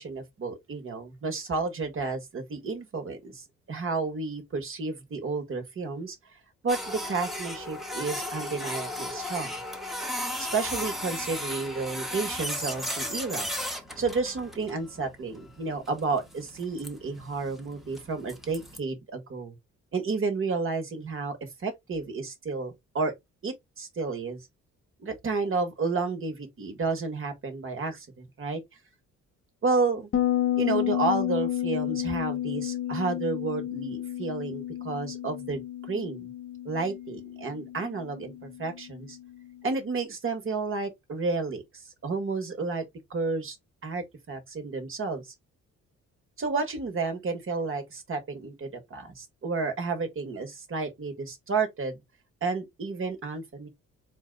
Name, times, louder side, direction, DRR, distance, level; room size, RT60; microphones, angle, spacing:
voice 1, 0.0-6.2 6.6-9.5 10.4-13.5 14.0-19.6 19.9-23.1 23.4-24.4 25.0-28.6 29.6-30.1 30.6-35.6 35.9-36.3 36.6-39.2 39.6-41.6 42.0-42.8 43.1-43.6 43.8-45.3 46.4-52.0 52.4-53.7, right 4 dB, 45° right, 1.3 m, -31 dB
Printer, 6.7-18.8, left 1 dB, ahead, 0.9 m, -35 dB
Bass guitar, 30.1-39.5, left 12 dB, 45° left, 0.9 m, -31 dB
4.1 x 2.2 x 3.8 m
cardioid pair, 90°, 30 cm